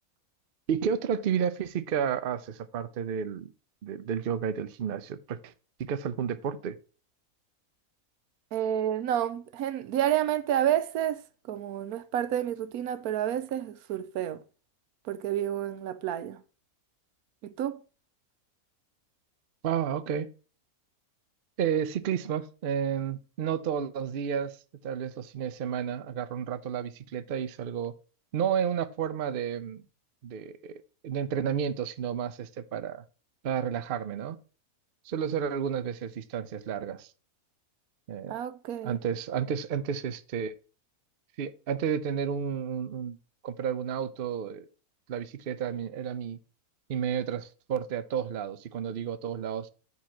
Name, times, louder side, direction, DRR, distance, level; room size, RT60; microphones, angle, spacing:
voice 1, 0.7-3.5 3.8-5.5 5.8-6.8 19.6-20.3 21.6-24.6 24.8-27.9 28.3-29.8 30.2-30.7 31.0-33.0 33.4-34.4 35.1-37.1 38.1-38.4 38.8-40.5 41.4-43.2 43.4-44.7 45.1-46.4 46.9-49.7, right 8 dB, 55° right, 0.6 m, -31 dB
voice 2, 8.5-14.4 15.0-16.4 17.4-17.8 38.3-39.0, right 11 dB, 80° right, 1.1 m, -30 dB
7.6 x 4.1 x 5.8 m
omnidirectional pair, 1.6 m